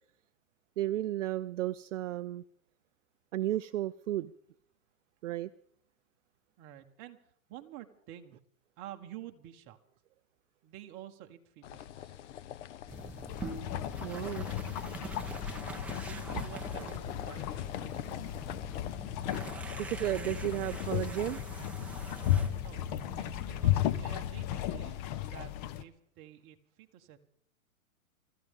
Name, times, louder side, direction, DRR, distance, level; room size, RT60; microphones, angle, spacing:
voice 1, 0.8-2.4 3.3-4.3 5.2-5.5 14.0-14.5 19.8-21.4, right 14 dB, 60° right, 0.5 m, -33 dB
voice 2, 6.6-7.2 7.5-8.4 8.8-9.8 10.6-12.3 15.9-18.3 22.6-22.8 23.2-27.2, right 12 dB, 30° right, 1.3 m, -50 dB
sound 1, 11.6-19.6, left 11 dB, 55° left, 0.8 m, -45 dB
sound 2, 12.9-24.2, right 2 dB, 5° right, 0.9 m, -44 dB
sound 3, 13.3-25.8, left 12 dB, 30° left, 0.6 m, -35 dB
24.5 x 13.5 x 3.7 m
hypercardioid pair, 135°, 42 cm